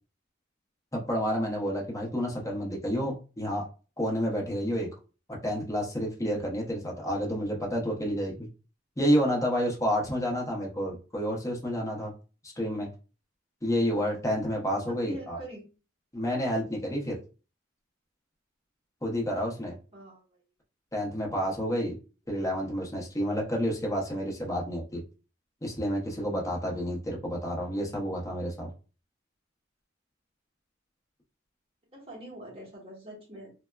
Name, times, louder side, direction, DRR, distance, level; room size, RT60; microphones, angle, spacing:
voice 1, 0.9-3.6 4.0-4.9 5.4-8.5 9.0-12.1 12.6-12.9 13.6-15.4 16.1-17.2 19.0-19.8 20.9-22.0 22.3-25.0 25.6-28.7, equal, 15° left, -1 dB, 0.7 m, -29 dB
voice 2, 14.9-15.7 19.9-20.4 31.9-33.5, right 1 dB, 30° right, -4 dB, 1.1 m, -43 dB
3.3 x 2.0 x 2.2 m, 0.34 s
head